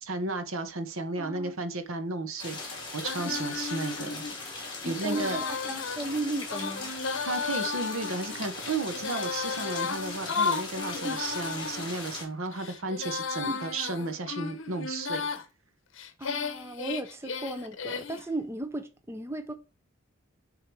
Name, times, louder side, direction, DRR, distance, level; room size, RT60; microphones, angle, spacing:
voice 1, 0.0-4.2 4.8-5.4 7.2-15.3, right 3 dB, 80° right, 1.0 m, -33 dB
voice 2, 1.2-1.5 3.2-3.5 4.8-6.9 11.0-11.2 13.5-13.6 16.2-19.5, right 2 dB, 10° right, 0.5 m, -35 dB
sound 1, 2.4-12.2, left 3 dB, 20° left, 2.6 m, -39 dB
Female singing, 3.0-11.9 12.5-15.4 16.0-18.3, left 5 dB, 65° left, 0.9 m, -34 dB
6.8 x 3.8 x 4.6 m
head